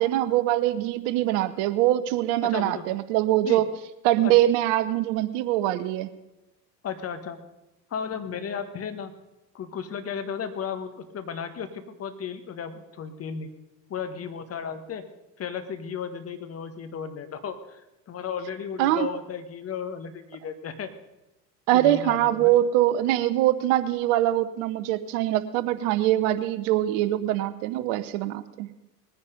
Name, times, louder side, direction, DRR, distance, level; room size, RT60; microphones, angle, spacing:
voice 1, 0.0-3.7 4.0-6.1 18.8-19.1 21.7-28.7, right 14 dB, 50° right, 14 dB, 0.8 m, -23 dB
voice 2, 2.4-2.8 3.4-3.6 4.2-4.4 6.8-7.4 7.9-9.1 9.5-13.5 13.9-15.0 15.4-20.9 21.7-22.5, left 7 dB, 30° left, 9 dB, 1.4 m, -34 dB
20.0 x 9.8 x 5.2 m, 0.96 s
figure-of-eight pair, 75°, 49 cm